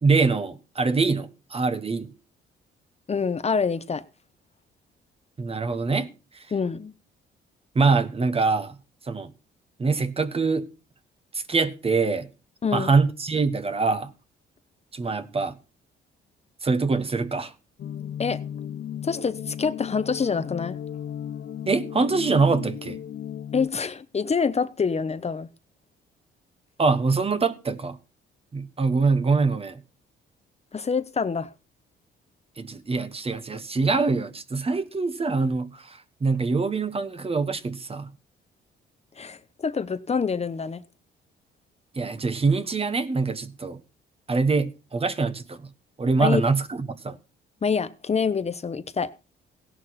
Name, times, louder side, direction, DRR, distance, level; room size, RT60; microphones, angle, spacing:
voice 1, 0.0-2.1 5.4-6.1 7.7-8.8 9.1-9.3 9.8-10.7 11.3-12.3 12.7-14.1 14.9-15.6 16.6-17.5 21.7-23.0 26.8-28.0 28.5-29.8 32.6-38.1 41.9-43.8 44.3-45.7 46.0-47.2, right 4 dB, 30° right, 1.3 m, -24 dB
voice 2, 3.1-4.0 6.5-6.9 12.6-12.9 18.2-18.4 19.0-20.8 23.5-25.5 30.7-31.5 39.2-40.8 46.2-46.4 47.6-49.1, left 5 dB, 30° left, 1.0 m, -26 dB
sound 1, 17.8-23.7, left 9 dB, 55° left, 0.7 m, -35 dB
16.5 x 11.0 x 4.3 m
cardioid pair, 90°, 20 cm